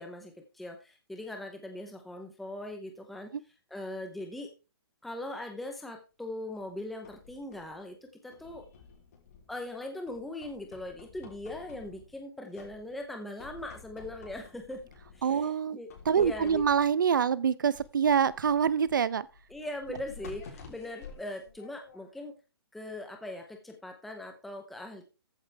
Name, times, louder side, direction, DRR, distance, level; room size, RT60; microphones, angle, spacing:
voice 1, 0.0-3.3 3.7-4.5 5.0-8.7 9.5-14.8 15.1-16.7 19.5-22.3 22.7-25.0, left 1 dB, ahead, 0.7 m, -40 dB
sound 1, 6.6-7.8 8.3-9.7 10.1-12.2 12.5-13.1 13.4-15.3 15.9-17.0 17.7-22.2, left 5 dB, 35° left, 3.4 m, -51 dB
voice 2, 15.2-15.8 16.1-19.3, right 7 dB, 50° right, 0.6 m, -25 dB
14.0 x 8.2 x 3.4 m
hypercardioid pair, 175°, 13 cm